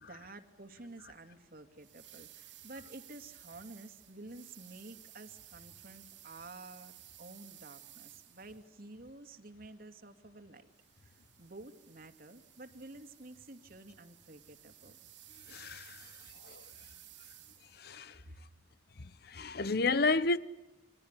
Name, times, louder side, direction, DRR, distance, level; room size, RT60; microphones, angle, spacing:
voice 1, 0.0-10.7 11.0-15.0 15.9-16.3 18.1-18.6, right 2 dB, 55° right, 2.4 m, -51 dB
sound 1, 1.8-8.8 10.7-17.9, right 14 dB, 85° right, 3.4 m, -56 dB
voice 2, 15.5-16.1 16.4-16.6 17.8-18.2 19.2-20.4, left 3 dB, 60° left, 1.0 m, -31 dB
29.5 x 24.0 x 8.3 m
head